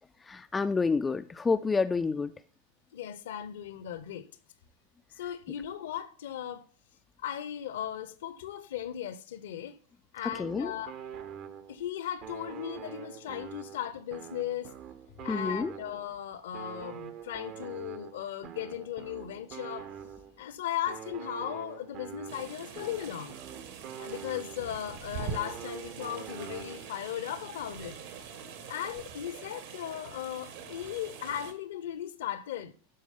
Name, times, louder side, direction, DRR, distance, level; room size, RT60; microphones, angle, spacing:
voice 1, 0.2-2.3 10.2-10.7 15.3-15.7, left 4 dB, 15° left, 0.4 m, -29 dB
voice 2, 2.9-4.3 5.2-6.6 7.2-9.8 10.1-10.9 11.7-14.7 15.2-19.9 20.4-23.3 24.0-28.0 28.7-32.7, left 10 dB, 55° left, 0.7 m, -37 dB
sound 1, 10.3-11.9 12.2-16.2 16.5-20.4 20.9-24.8 25.2-27.0, right 9 dB, 35° right, 0.7 m, -45 dB
sound 2, 22.3-31.5, right 6 dB, 55° right, 1.3 m, -44 dB
12.0 x 4.8 x 3.5 m
figure-of-eight pair, 90°, 0 cm